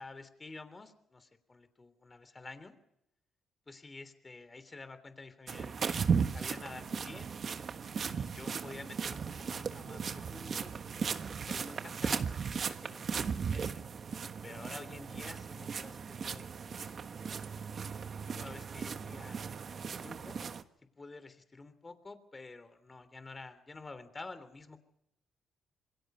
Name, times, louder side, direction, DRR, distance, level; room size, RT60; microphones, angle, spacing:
voice 1, 0.0-2.8 3.7-5.9 6.3-7.3 8.0-13.8 14.4-16.5 17.5-19.7 20.0-20.4 21.0-24.8, left 3 dB, 25° left, 12 dB, 3.2 m, -50 dB
sound 1, 5.5-20.6, right 6 dB, 50° right, 1.3 m, -36 dB
27.5 x 22.5 x 5.6 m, 0.82 s
cardioid pair, 90°, 0 cm